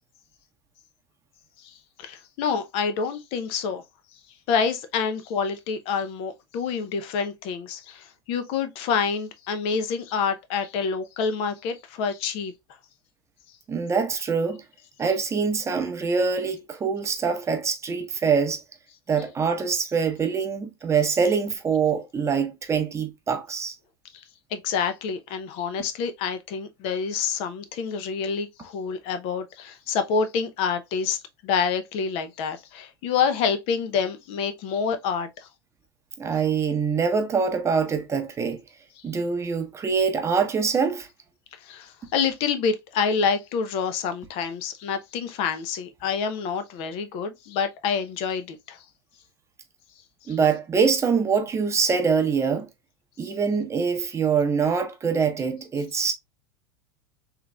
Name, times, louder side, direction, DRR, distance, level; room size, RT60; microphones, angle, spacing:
voice 1, 1.6-3.8 4.5-12.5 24.5-31.2 31.4-35.5 41.5-48.8 50.3-50.4, left 6 dB, 50° left, 0.6 m, -27 dB
voice 2, 13.7-14.6 15.0-18.6 19.1-23.7 36.2-38.6 39.0-41.1 50.3-52.7 53.2-56.1, right 5 dB, 20° right, 0.8 m, -24 dB
3.6 x 2.9 x 2.2 m
hypercardioid pair, 85°, 13 cm